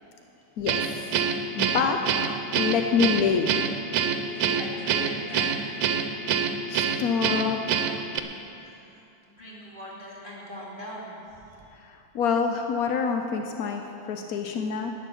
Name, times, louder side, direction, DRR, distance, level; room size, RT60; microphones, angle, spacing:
Guitar, 0.7-8.2, right 7 dB, 75° right, 1.5 m, -26 dB
voice 1, 1.6-2.0 2.6-3.7 6.3-8.0 12.1-14.9, left 6 dB, 75° left, 4 dB, 0.8 m, -26 dB
voice 2, 3.9-5.6 8.6-9.0 9.4-11.6, equal, 25° left, -6 dB, 2.8 m, -41 dB
11.0 x 9.9 x 7.1 m, 2.9 s
omnidirectional pair, 2.3 m